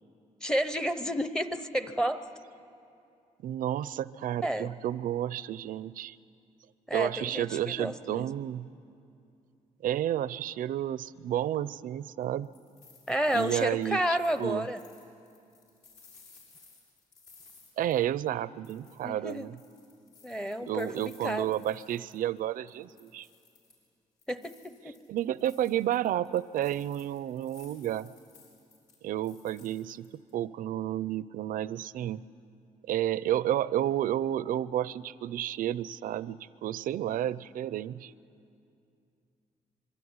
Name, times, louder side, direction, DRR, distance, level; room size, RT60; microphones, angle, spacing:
voice 1, 0.4-2.2 4.4-4.7 6.9-8.3 13.1-14.8 19.0-19.5 20.2-21.5 24.3-25.0, equal, 5° left, 10 dB, 0.8 m, -31 dB
voice 2, 3.4-6.2 6.9-8.7 9.8-12.5 13.3-14.7 17.8-19.6 20.7-23.3 25.1-28.1 29.0-30.1 30.3-32.2 32.8-38.1, right 12 dB, 75° right, 18 dB, 0.5 m, -31 dB
sound 1, 12.2-18.4 18.6-22.4 22.7-23.9 24.2-30.3, left 4 dB, 70° left, 7.1 m, -59 dB
25.5 x 23.0 x 9.6 m, 2.5 s
wide cardioid pair, 180°, 14 cm